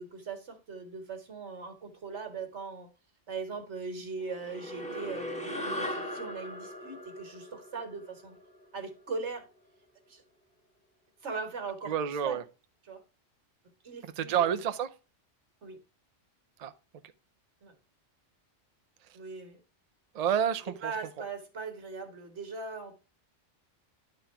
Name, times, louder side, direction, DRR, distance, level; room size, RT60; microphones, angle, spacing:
voice 1, 0.0-2.9 3.3-8.3 8.7-9.5 10.1-10.2 11.2-12.4 12.8-13.0 13.8-14.6 15.6-15.8 17.6-17.7 19.1-19.6 20.8-23.0, right 4 dB, 65° right, 1.8 m, -40 dB
sound 1, 4.3-9.0, equal, 5° left, 1.9 m, -39 dB
voice 2, 11.9-12.4 14.0-14.9 16.6-16.7 20.1-20.9, right 8 dB, 45° right, 0.5 m, -29 dB
10.5 x 3.9 x 4.4 m
omnidirectional pair, 1.3 m